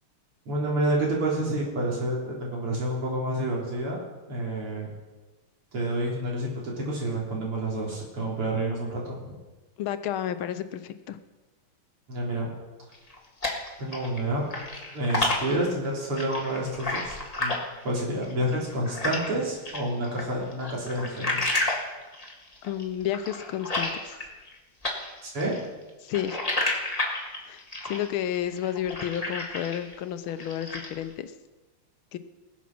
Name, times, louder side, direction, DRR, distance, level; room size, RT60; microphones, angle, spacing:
voice 1, 0.5-4.0 4.3-4.9 5.7-9.4 12.1-12.5 13.8-14.4 14.9-17.6 17.8-21.4 25.2-25.6, right 1 dB, 90° right, -3 dB, 4.4 m, -29 dB
voice 2, 9.8-11.2 22.6-24.4 26.0-26.4 27.5-31.3 32.1-32.2, left 10 dB, 75° left, 11 dB, 1.5 m, -31 dB
sound 1, 12.9-14.2 14.5-19.3 19.7-24.6 24.8-29.9 30.3-31.0, left 2 dB, 20° left, 1.8 m, -31 dB
20.0 x 7.3 x 6.0 m, 1.2 s
omnidirectional pair, 2.4 m